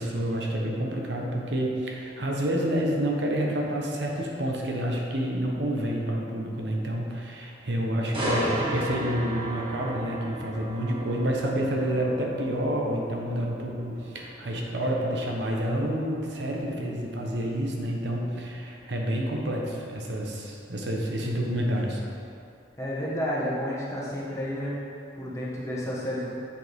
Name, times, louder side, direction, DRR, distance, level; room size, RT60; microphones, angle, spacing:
voice 1, 0.0-22.0, equal, 75° right, -1 dB, 1.0 m, -29 dB
sound 1, 8.1-22.0 22.4-22.7, right 1 dB, 30° right, 1.5 m, -37 dB
voice 2, 22.8-24.7 25.1-26.3, equal, 15° left, -7 dB, 1.5 m, -31 dB
7.8 x 6.6 x 3.6 m, 2.5 s
head